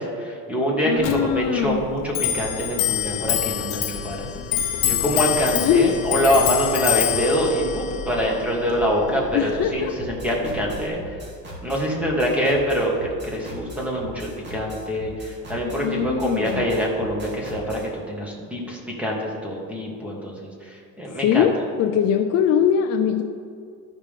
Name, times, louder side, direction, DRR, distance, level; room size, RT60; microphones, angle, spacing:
voice 1, 0.0-4.2 4.8-11.2 11.6-21.5, equal, 5° right, -2 dB, 1.7 m, -25 dB
voice 2, 0.8-1.8 5.5-6.0 9.3-9.9 15.8-16.6 21.2-21.5 21.8-23.2, left 9 dB, 50° left, 3 dB, 0.5 m, -21 dB
Clock, 1.0-10.9, left 10 dB, 70° left, 0.9 m, -27 dB
sound 1, 9.9-17.9, left 1 dB, 30° right, 2.1 m, -39 dB
13.0 x 5.1 x 3.7 m, 2.2 s
cardioid pair, 125°, 33 cm